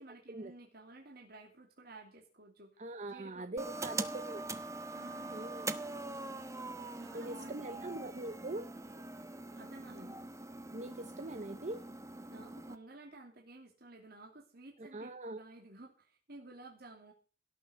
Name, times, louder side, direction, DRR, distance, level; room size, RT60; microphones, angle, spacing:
voice 1, 0.0-2.8 3.1-4.5 4.9-5.5 6.9-7.9 9.5-10.2 12.3-17.1, right 2 dB, 55° right, 1 dB, 2.7 m, -54 dB
voice 2, 2.8-4.4 5.3-5.7 7.1-8.7 10.7-11.8 14.8-15.4, right 2 dB, 40° right, 11 dB, 0.8 m, -42 dB
sound 1, 3.6-12.8, right 2 dB, 15° right, 1.0 m, -43 dB
17.5 x 6.7 x 7.9 m, 0.36 s
head